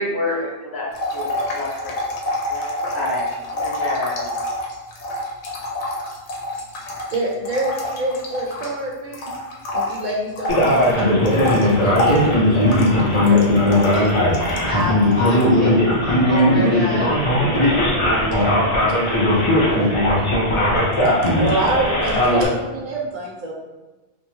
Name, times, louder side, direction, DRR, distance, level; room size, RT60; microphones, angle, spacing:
voice 1, 0.0-2.0 2.5-4.3, left 1 dB, 20° left, -8 dB, 0.8 m, -28 dB
sound 1, 0.9-8.8 9.1-14.8 15.1-15.5, left 1 dB, 85° left, 0.9 m, -27 dB
voice 2, 7.1-9.3 9.7-12.8 13.1-14.2 17.7-18.0 21.4-23.5, right 1 dB, 50° right, -3 dB, 0.7 m, -26 dB
Male speech man speaking, 10.5-22.5, left 1 dB, 40° left, 0.4 m, -18 dB
voice 3, 14.7-17.2, left 1 dB, 65° left, -7 dB, 0.9 m, -28 dB
voice 4, 18.0-20.8, right 2 dB, 85° right, -5 dB, 1.1 m, -32 dB
2.6 x 2.1 x 3.0 m, 1.1 s
omnidirectional pair, 1.1 m